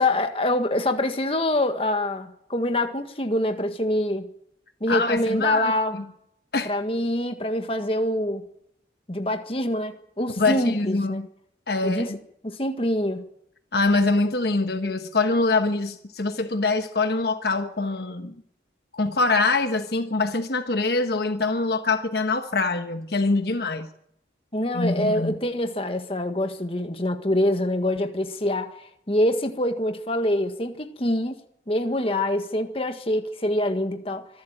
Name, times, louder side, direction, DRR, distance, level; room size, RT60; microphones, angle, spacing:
voice 1, 0.0-4.3 4.8-6.0 6.6-8.4 9.1-11.2 11.8-12.1 12.4-13.2 24.5-28.7 29.1-31.4 31.7-34.3, left 1 dB, 30° left, 1.7 m, -25 dB
voice 2, 4.9-6.1 6.5-6.7 10.4-11.3 11.7-12.2 13.7-18.3 18.9-23.9 24.7-25.4, left 3 dB, 60° left, 1.3 m, -24 dB
25.5 x 12.5 x 9.0 m
head